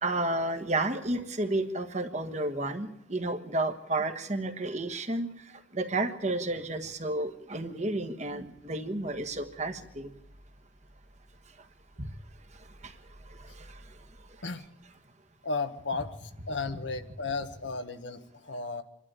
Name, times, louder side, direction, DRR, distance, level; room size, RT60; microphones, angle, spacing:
voice 1, 0.0-10.1 12.0-12.1 12.6-13.0 13.3-13.9 14.2-14.4, right 2 dB, 40° right, 7 dB, 1.4 m, -32 dB
voice 2, 14.4-14.7 15.4-18.8, left 3 dB, 80° left, 8 dB, 1.4 m, -34 dB
26.5 x 12.0 x 8.9 m, 0.83 s
head